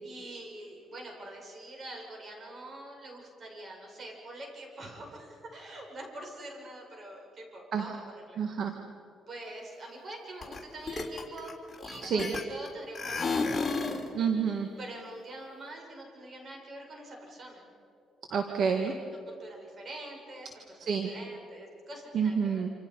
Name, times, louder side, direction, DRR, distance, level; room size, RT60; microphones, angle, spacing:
voice 1, 0.0-8.4 9.3-11.5 11.8-14.0 14.8-17.7 19.3-22.6, right 1 dB, 45° right, 1 dB, 6.8 m, -45 dB
voice 2, 8.4-8.8 12.0-12.3 14.1-14.7 18.3-18.9 20.9-21.1 22.1-22.7, right 6 dB, 65° right, 4 dB, 1.9 m, -28 dB
sound 1, 10.4-10.6 10.9-12.7 13.0-14.1, left 4 dB, 30° left, 3.5 m, -32 dB
27.5 x 27.5 x 5.6 m, 2.7 s
cardioid pair, 90°, 0 cm